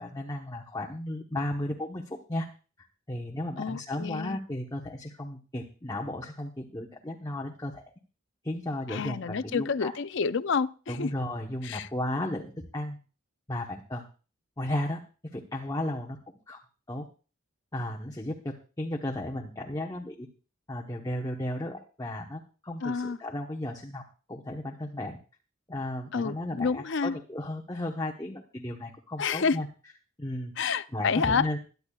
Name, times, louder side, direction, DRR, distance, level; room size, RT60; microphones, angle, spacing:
voice 1, 0.0-2.5 2.8-7.8 8.4-9.9 10.9-13.0 13.5-14.1 14.6-15.0 15.3-16.6 16.9-17.1 17.7-20.3 20.7-24.0 24.3-25.2 25.7-29.7 30.2-30.5 30.9-31.6, left 1 dB, 20° left, 0 dB, 1.1 m, -34 dB
voice 2, 3.6-4.4 8.9-11.1 11.6-11.9 22.8-23.2 26.1-27.2 29.2-29.6 30.6-31.5, left 5 dB, 60° left, 14 dB, 0.5 m, -29 dB
21.5 x 10.5 x 2.4 m, 0.36 s
head